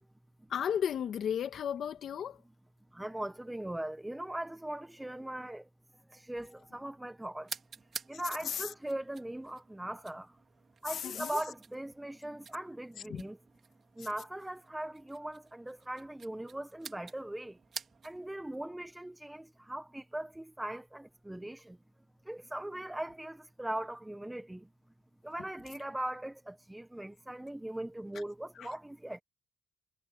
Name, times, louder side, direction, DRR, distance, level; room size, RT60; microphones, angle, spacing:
voice 1, 0.5-2.4 8.5-8.6 10.9-11.4 13.1-13.2 28.6-28.7, left 8 dB, 65° left, 1.8 m, -34 dB
voice 2, 2.9-5.7 6.1-7.5 8.1-10.4 10.8-13.4 13.9-17.6 18.0-21.8 22.2-24.7 25.2-29.2, right 1 dB, 10° right, 1.4 m, -40 dB
sound 1, 7.4-18.3, right 6 dB, 50° right, 3.7 m, -50 dB
cardioid pair, 90°, 0 cm